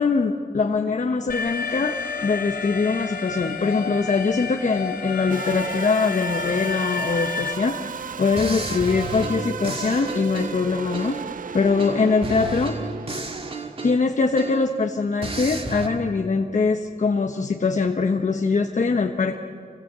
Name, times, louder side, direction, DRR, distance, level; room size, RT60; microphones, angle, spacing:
voice 1, 0.0-7.9 8.2-11.2 11.5-12.8 13.8-19.4, left 4 dB, 50° left, 3 dB, 1.3 m, -22 dB
Alarm, 1.3-7.5, left 5 dB, 80° left, 3.7 m, -30 dB
sound 1, 5.3-14.1, right 6 dB, 60° right, 0.6 m, -35 dB
sound 2, 7.8-8.0 8.4-11.4 11.8-14.8 15.2-15.9, right 3 dB, 40° right, 2.3 m, -33 dB
28.0 x 21.5 x 8.2 m, 2.1 s
wide cardioid pair, 80°, 16 cm